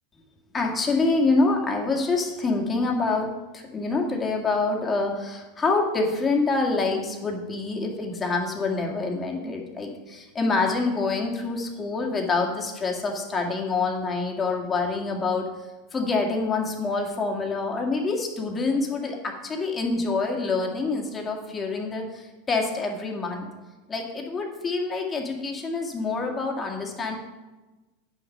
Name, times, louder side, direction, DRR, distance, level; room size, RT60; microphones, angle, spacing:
voice 1, 0.5-15.5 15.9-23.5 23.9-27.2, left 3 dB, 20° left, 1 dB, 2.0 m, -26 dB
9.2 x 6.1 x 5.4 m, 1.2 s
hypercardioid pair, 100°, 0 cm